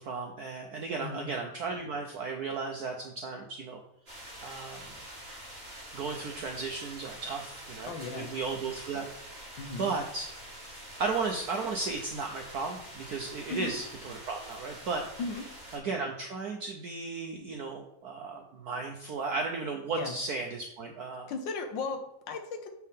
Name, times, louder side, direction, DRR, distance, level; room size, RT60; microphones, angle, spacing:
voice 1, 0.0-3.8 4.4-4.8 5.9-9.5 9.8-10.3 11.0-15.0 15.7-21.3, right 4 dB, 75° right, 2 dB, 0.9 m, -35 dB
sound 1, 4.1-15.8, right 1 dB, 30° right, 2.1 m, -46 dB
voice 2, 7.9-8.3 9.6-9.9 13.5-13.7 15.2-15.4 19.9-20.2 21.3-22.7, left 4 dB, 65° left, 5 dB, 1.3 m, -36 dB
7.2 x 4.6 x 3.5 m, 0.84 s
omnidirectional pair, 2.4 m